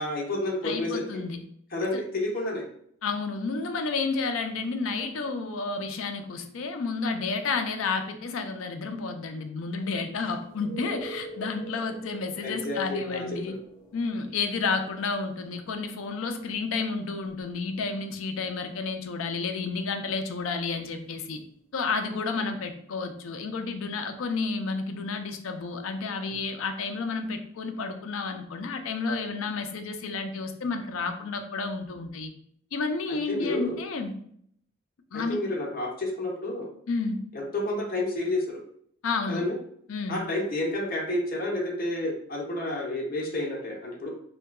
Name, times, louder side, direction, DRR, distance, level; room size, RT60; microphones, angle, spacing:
voice 1, 0.0-1.2 1.7-2.6 12.4-13.6 33.1-33.8 35.1-36.7 37.3-38.6 39.3-39.5 40.1-44.1, left 1 dB, 45° left, -3 dB, 0.8 m, -30 dB
voice 2, 0.6-1.4 3.0-13.5 13.9-21.4 21.7-32.3 32.7-34.1 35.1-35.4 36.9-37.2 39.0-39.4 39.9-40.2, left 4 dB, 75° left, 7 dB, 0.4 m, -31 dB
sound 1, 10.5-22.0 26.3-26.4, right 2 dB, 20° right, 1.2 m, -48 dB
3.6 x 2.2 x 2.2 m, 0.66 s
head